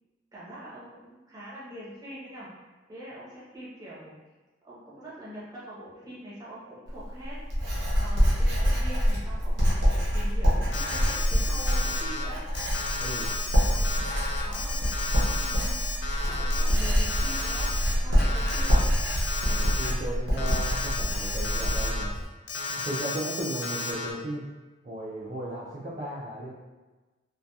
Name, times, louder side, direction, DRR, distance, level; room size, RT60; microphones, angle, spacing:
voice 1, 0.3-2.5 2.9-4.1 4.6-7.3 7.9-12.4 13.7-13.9 14.4-14.8 15.3-17.7 18.0-18.8, equal, 20° right, -8 dB, 0.7 m, -43 dB
Writing, 6.9-22.2, equal, 75° right, 0.7 m, -26 dB
Alarm, 10.7-12.2 12.5-17.9 18.2-19.9 20.4-22.0 22.5-24.1, left 3 dB, 65° left, 0.3 m, -33 dB
voice 2, 13.0-13.3 19.4-22.1 22.7-24.5 24.8-26.5, right 1 dB, 40° right, -7 dB, 0.3 m, -35 dB
2.7 x 2.2 x 2.2 m, 1.2 s
head